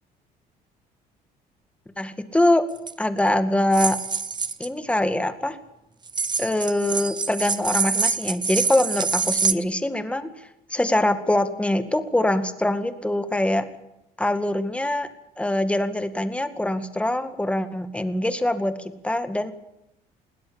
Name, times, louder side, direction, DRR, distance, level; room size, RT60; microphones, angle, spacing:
voice 1, 2.0-2.6 3.0-4.0 4.6-5.6 6.4-10.3 10.7-13.7 14.2-15.1 15.4-19.5, left 1 dB, 5° left, 10 dB, 2.0 m, -23 dB
sound 1, 2.8-2.9 3.7-4.7 6.1-9.5, right 5 dB, 25° right, 0.9 m, -25 dB
21.0 x 17.0 x 8.9 m, 0.86 s
cardioid pair, 110°, 17 cm